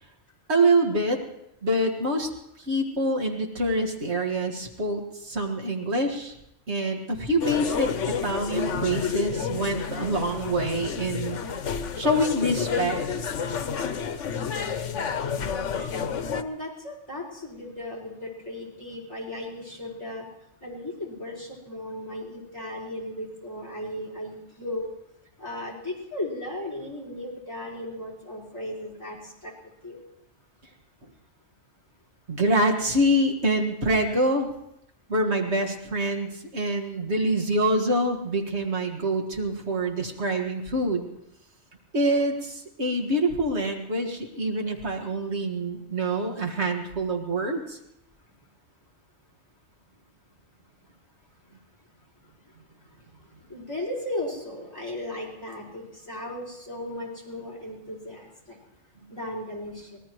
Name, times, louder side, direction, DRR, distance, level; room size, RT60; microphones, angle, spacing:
voice 1, 0.5-1.2 1.6-2.3 2.6-6.3 6.7-11.4 12.0-13.0 32.3-34.5 35.1-41.1 41.9-47.8, right 1 dB, 65° right, 2 dB, 2.1 m, -25 dB
sound 1, 7.4-16.4, left 6 dB, 85° left, 1.2 m, -30 dB
voice 2, 16.2-20.2 20.6-24.9 25.4-29.5 29.8-30.0 53.5-58.6 59.1-60.0, left 1 dB, 20° left, -5 dB, 5.0 m, -36 dB
24.5 x 18.5 x 3.1 m, 0.83 s
omnidirectional pair, 1.2 m